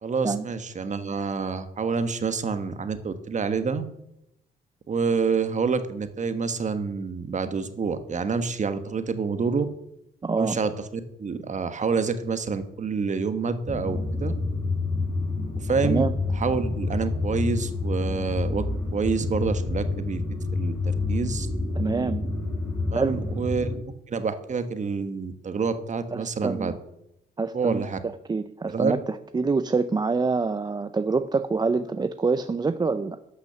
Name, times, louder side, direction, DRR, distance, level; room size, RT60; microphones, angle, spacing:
voice 1, 0.0-3.8 4.9-9.7 10.3-14.3 15.6-16.0 16.3-18.7 18.9-20.2 20.5-21.5 22.9-26.7 27.5-28.0 28.7-28.9, right 5 dB, 35° right, 10 dB, 1.2 m, -27 dB
voice 2, 10.2-10.6 15.8-16.1 21.8-22.2 22.9-23.2 26.1-26.7 27.4-29.0 29.3-33.2, right 4 dB, 20° right, 11 dB, 0.5 m, -26 dB
sound 1, 13.6-23.8, left 3 dB, 5° left, 4.3 m, -28 dB
12.0 x 6.1 x 6.6 m, 0.82 s
cardioid pair, 90°, 20 cm